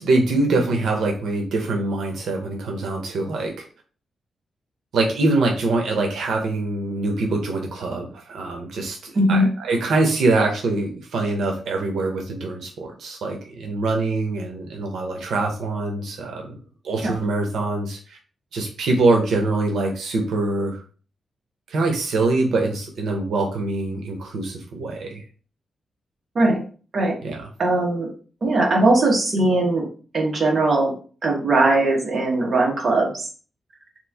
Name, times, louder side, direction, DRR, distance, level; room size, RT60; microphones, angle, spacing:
voice 1, 0.0-3.7 4.9-16.6 16.8-18.2 18.5-20.8 21.7-25.2 27.2-27.5, right 2 dB, 90° right, 2 dB, 0.7 m, -24 dB
voice 2, 9.1-9.5 26.3-26.6 26.9-27.2 27.6-28.1 28.4-30.9 31.2-33.3, right 2 dB, 40° right, -1 dB, 1.0 m, -20 dB
3.0 x 2.4 x 3.4 m, 0.39 s
wide cardioid pair, 145°, 0 cm